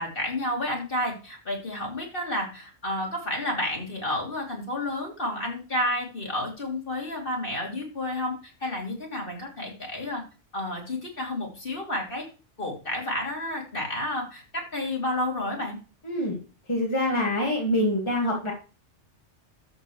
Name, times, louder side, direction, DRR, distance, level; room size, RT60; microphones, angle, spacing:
voice 1, 0.0-10.2 10.5-12.2 12.6-15.8, left 1 dB, 50° left, 0 dB, 3.2 m, -31 dB
voice 2, 16.1-16.4 16.7-18.5, left 1 dB, 25° left, -1 dB, 2.0 m, -25 dB
13.0 x 7.1 x 3.2 m, 0.34 s
omnidirectional pair, 1.2 m